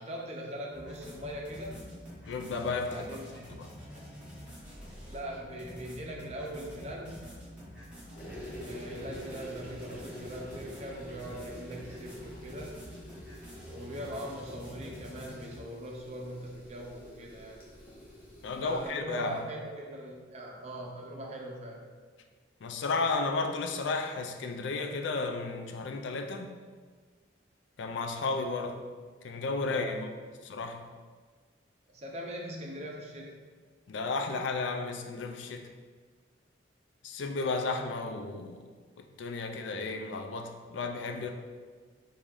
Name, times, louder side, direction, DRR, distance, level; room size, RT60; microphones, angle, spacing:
voice 1, 0.0-1.8 2.9-3.4 3.9-4.0 5.1-7.4 8.6-12.8 13.6-17.6 18.5-21.9 29.7-29.9 31.9-33.4, equal, 35° right, -1 dB, 0.6 m, -41 dB
sound 1, 0.7-15.6, equal, 5° right, 1.1 m, -47 dB
voice 2, 2.3-3.2 3.5-3.7 18.4-19.4 22.6-26.5 27.8-28.8 29.2-30.1 30.4-30.9 33.9-35.7 37.0-38.7 39.2-41.3, left 3 dB, 70° left, 5 dB, 0.4 m, -33 dB
sound 2, 8.1-18.9, equal, 45° left, 1.0 m, -47 dB
4.6 x 2.7 x 3.6 m, 1.5 s
head